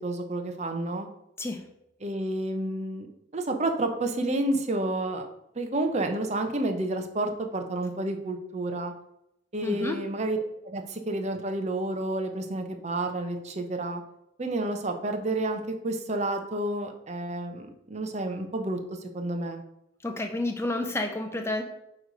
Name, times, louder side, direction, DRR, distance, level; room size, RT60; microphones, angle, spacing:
voice 1, 0.0-1.1 2.0-3.1 3.3-5.2 5.5-8.9 9.5-14.0 14.4-19.6, right 2 dB, 35° right, 5 dB, 0.9 m, -30 dB
voice 2, 9.6-10.0 20.0-21.6, left 2 dB, 15° left, 4 dB, 0.7 m, -30 dB
8.6 x 3.2 x 5.2 m, 0.82 s
head